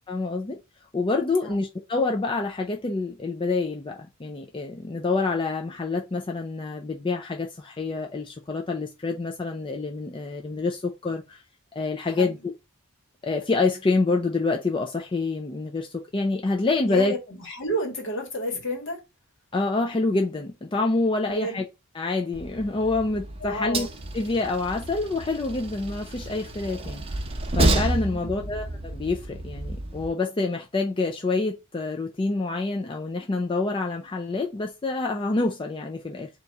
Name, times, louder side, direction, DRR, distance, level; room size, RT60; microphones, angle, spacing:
voice 1, 0.1-0.6 0.9-11.4 11.7-12.5 13.2-17.1 19.5-21.7 21.9-23.9 24.1-27.2 27.5-36.3, left 3 dB, 25° left, 0.4 m, -27 dB
voice 2, 16.9-19.0 21.3-21.6 23.4-23.9 28.1-28.5, equal, 60° left, 1.6 m, -31 dB
Train, 22.3-30.1, right 2 dB, 25° right, 0.8 m, -30 dB
4.1 x 2.9 x 3.4 m
head